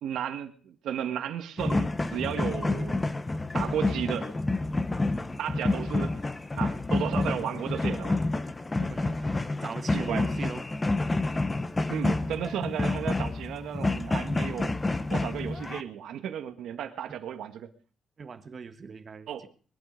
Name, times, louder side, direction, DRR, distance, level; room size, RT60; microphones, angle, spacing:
voice 1, 0.0-3.0 3.5-4.3 5.4-6.2 6.6-8.2 8.8-8.9 9.9-10.2 11.9-14.8 15.1-17.7 19.3-19.5, right 9 dB, 80° right, 7 dB, 1.7 m, -34 dB
sound 1, 1.6-15.8, left 2 dB, 15° left, 1.0 m, -29 dB
voice 2, 8.9-10.7 18.2-19.5, right 5 dB, 35° right, 9 dB, 1.5 m, -40 dB
21.5 x 11.5 x 5.2 m, 0.42 s
cardioid pair, 140°, 0 cm